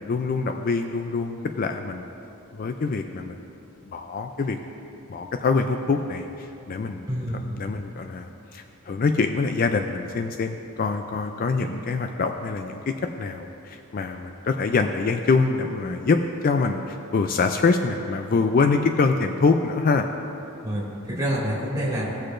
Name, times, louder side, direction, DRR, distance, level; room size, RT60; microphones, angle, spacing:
voice 1, 0.0-2.1 2.5-3.4 3.9-4.6 5.1-6.3 6.7-7.1 7.6-16.2 16.4-20.1, left 4 dB, 40° left, 6 dB, 0.3 m, -24 dB
voice 2, 7.0-7.6 11.6-11.7 20.6-22.1, equal, 15° right, -6 dB, 2.2 m, -28 dB
17.0 x 6.5 x 2.5 m, 2.9 s
head